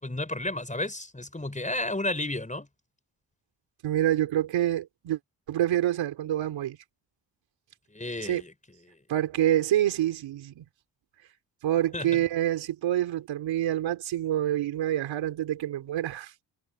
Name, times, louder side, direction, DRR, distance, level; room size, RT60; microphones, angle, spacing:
voice 1, 0.0-2.7 7.9-8.5 8.9-9.0 11.9-12.2, left 2 dB, 15° left, 5.2 m, -32 dB
voice 2, 3.8-5.2 5.5-6.8 8.2-8.4 9.1-10.6 11.6-16.3, right 12 dB, 85° right, 3.8 m, -27 dB
supercardioid pair, 50°, 44 cm